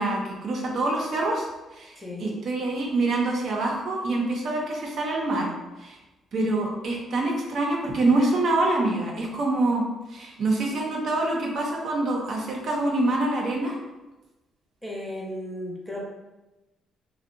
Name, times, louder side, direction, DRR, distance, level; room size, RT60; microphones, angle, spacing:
voice 1, 0.0-1.5 1.7-1.9 2.2-5.5 5.8-5.9 6.3-9.8 10.1-13.7, right 2 dB, 65° right, -1 dB, 0.5 m, -25 dB
voice 2, 2.0-2.4 14.8-16.0, left 1 dB, 5° left, -3 dB, 0.7 m, -35 dB
2.5 x 2.1 x 2.5 m, 1.1 s
cardioid pair, 90°, 0 cm